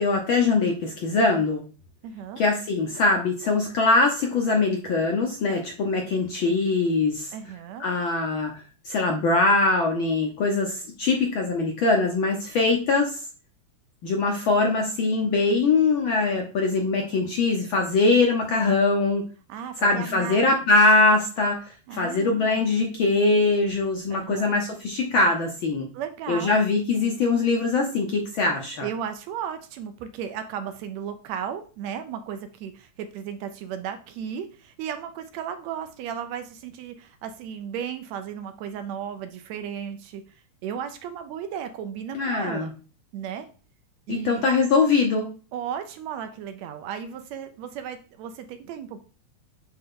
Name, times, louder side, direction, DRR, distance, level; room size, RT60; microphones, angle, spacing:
voice 1, 0.0-1.6 2.4-7.3 7.8-8.5 8.8-13.2 14.0-19.2 19.8-25.9 26.3-28.9 42.1-42.7 44.1-45.3, left 3 dB, 70° left, 2 dB, 1.2 m, -22 dB
voice 2, 2.0-2.4 7.3-7.9 19.5-20.4 21.9-22.7 24.1-24.6 25.9-26.5 28.8-40.2 40.6-42.8 43.1-43.5 44.1-44.5 45.5-49.0, right 8 dB, 75° right, 8 dB, 1.8 m, -35 dB
9.4 x 3.4 x 3.7 m, 0.37 s
omnidirectional pair, 3.3 m